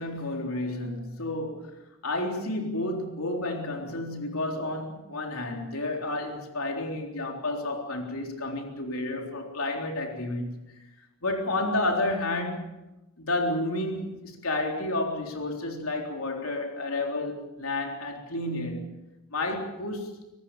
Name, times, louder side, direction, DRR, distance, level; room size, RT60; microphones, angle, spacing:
voice 1, 0.0-1.7 2.0-10.6 11.2-12.7 13.2-18.9 19.3-20.2, left 2 dB, 75° left, 3.8 m, -31 dB
24.5 x 19.5 x 7.0 m
head